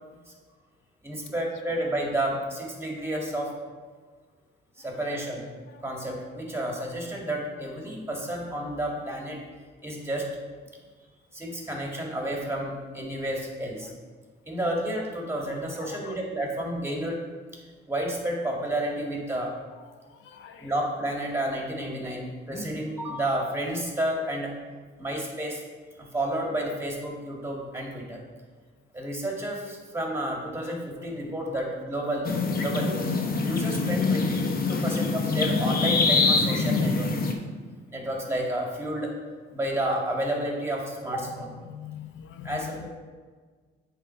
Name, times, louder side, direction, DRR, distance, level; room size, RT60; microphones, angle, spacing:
voice 1, 1.0-3.5 4.8-5.5 5.8-9.4 9.8-10.3 11.3-13.9 14.5-17.2 17.9-19.5 20.6-24.5 25.0-25.6 26.0-28.2 28.9-33.0 33.4-34.4 34.7-37.1 37.9-39.1 39.5-41.5 42.4-42.9, right 1 dB, 10° right, -1 dB, 1.9 m, -31 dB
voice 2, 15.8-16.2 20.1-20.7 22.5-22.7 34.7-34.8 37.7-37.8 41.6-42.9, left 9 dB, 75° left, 8 dB, 0.5 m, -43 dB
sound 1, 32.2-37.3, left 4 dB, 50° left, 0.9 m, -24 dB
8.2 x 3.7 x 5.7 m, 1.5 s
cardioid pair, 90°, 20 cm